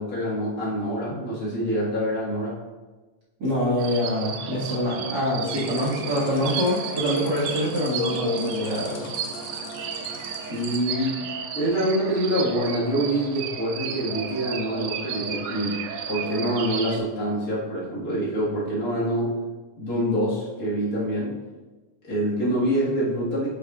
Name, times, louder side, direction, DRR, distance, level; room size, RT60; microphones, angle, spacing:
voice 1, 0.0-2.6 10.5-11.3 11.5-19.3 19.8-21.4 22.0-23.5, equal, 45° left, -7 dB, 1.1 m, -26 dB
voice 2, 3.4-9.1, left 1 dB, 45° right, -7 dB, 1.4 m, -25 dB
sound 1, 3.8-17.0, right 7 dB, 90° right, 1.8 m, -33 dB
sound 2, 5.4-10.8, left 2 dB, 85° left, 1.5 m, -35 dB
9.3 x 5.8 x 2.4 m, 1.2 s
omnidirectional pair, 4.2 m